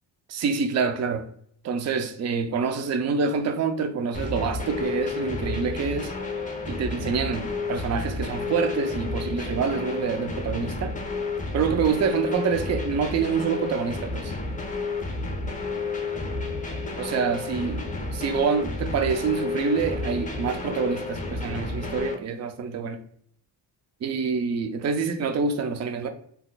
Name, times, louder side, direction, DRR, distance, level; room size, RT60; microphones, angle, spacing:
voice 1, 0.3-1.3 1.6-6.1 6.7-10.9 11.5-14.3 17.0-23.0 24.0-26.1, right 5 dB, 35° right, 0.5 m, -26 dB
sound 1, 4.1-22.1, left 3 dB, 15° left, 0.8 m, -31 dB
3.7 x 2.9 x 2.3 m
cardioid pair, 90°, 45 cm